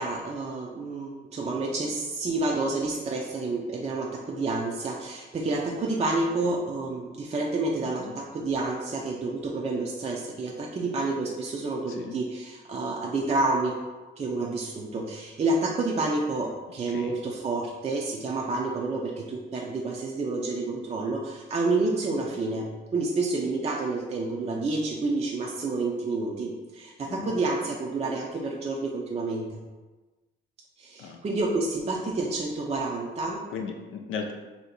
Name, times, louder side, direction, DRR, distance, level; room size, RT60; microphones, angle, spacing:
voice 1, 0.0-13.8 14.2-29.6 30.8-33.4, right 3 dB, 30° right, -1 dB, 0.5 m, -29 dB
voice 2, 7.8-8.1 11.9-12.2 16.9-17.1 27.1-27.4 31.0-31.2 33.5-34.3, left 5 dB, 80° left, 3 dB, 0.5 m, -37 dB
2.8 x 2.7 x 4.2 m, 1.2 s
cardioid pair, 90°, 20 cm